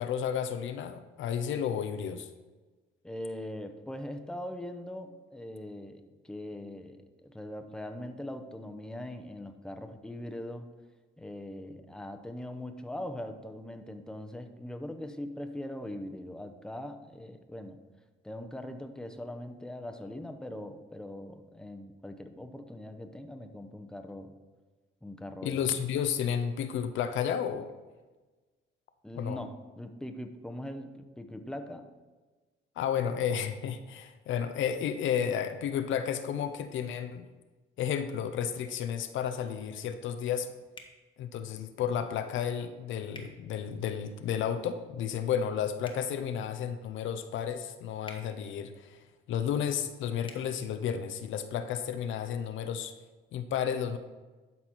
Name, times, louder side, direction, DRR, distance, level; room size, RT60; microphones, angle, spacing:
voice 1, 0.0-2.3 25.4-27.7 29.2-29.4 32.8-37.3 37.8-40.5 41.2-52.9 53.3-54.0, left 8 dB, 75° left, 9 dB, 0.6 m, -32 dB
voice 2, 3.0-10.7 11.2-17.8 18.2-24.3 25.0-25.6 29.0-31.9, left 1 dB, 5° left, 7 dB, 0.7 m, -41 dB
sound 1, 40.7-41.0 43.1-43.3 45.8-46.0 48.0-48.2 50.2-50.4, left 2 dB, 25° left, 1.1 m, -47 dB
12.0 x 4.2 x 4.4 m, 1.3 s
cardioid pair, 90°, 20 cm